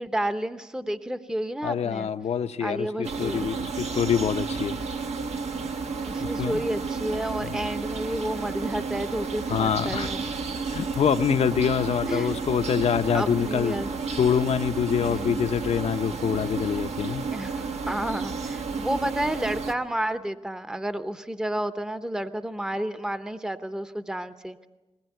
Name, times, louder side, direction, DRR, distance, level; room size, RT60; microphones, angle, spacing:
voice 1, 0.0-2.1 2.6-3.5 6.0-10.2 12.1-12.3 13.1-13.9 15.0-15.4 17.3-24.7, right 1 dB, 5° right, 0.8 m, -31 dB
voice 2, 1.6-4.8 6.2-6.6 7.4-7.5 9.5-10.1 10.7-13.8 14.2-17.2, left 8 dB, 75° left, 0.8 m, -25 dB
sound 1, 3.0-19.7, right 4 dB, 80° right, 1.4 m, -32 dB
20.5 x 19.0 x 9.2 m
cardioid pair, 85°, 11 cm